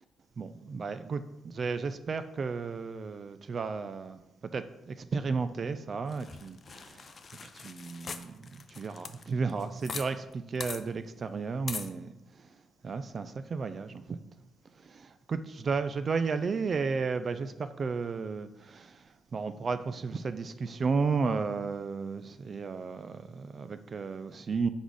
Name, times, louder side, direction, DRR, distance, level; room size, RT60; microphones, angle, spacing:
voice 1, 0.4-4.2 4.5-7.1 7.4-12.5 12.8-14.2 14.8-19.0 19.3-24.7, right 4 dB, 45° right, 11 dB, 0.3 m, -33 dB
sound 1, 6.1-10.1 10.3-10.4 10.6-10.8 11.7-11.9, left 5 dB, 45° left, 0.5 m, -41 dB
5.4 x 3.9 x 4.8 m, 0.92 s
cardioid pair, 90°, 0 cm